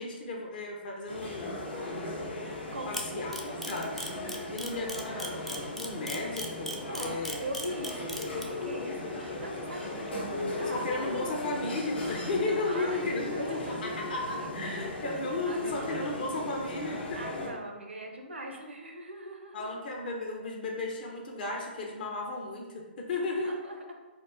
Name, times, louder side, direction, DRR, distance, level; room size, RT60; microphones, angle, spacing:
voice 1, 0.0-1.6 2.9-3.3 3.7-3.9 4.5-7.4 10.6-17.2 19.5-23.6, left 2 dB, 55° left, 0 dB, 0.8 m, -34 dB
sound 1, 1.1-17.5, left 2 dB, 70° left, 1.2 m, -37 dB
voice 2, 2.5-3.6 6.9-10.9 12.7-14.0 15.1-16.2 17.2-19.7 23.2-23.9, right 1 dB, 90° right, 2 dB, 0.7 m, -41 dB
Camera, 2.9-8.4, left 1 dB, 5° left, 0.3 m, -37 dB
4.2 x 2.4 x 3.4 m, 1.2 s
hypercardioid pair, 135°, 6 cm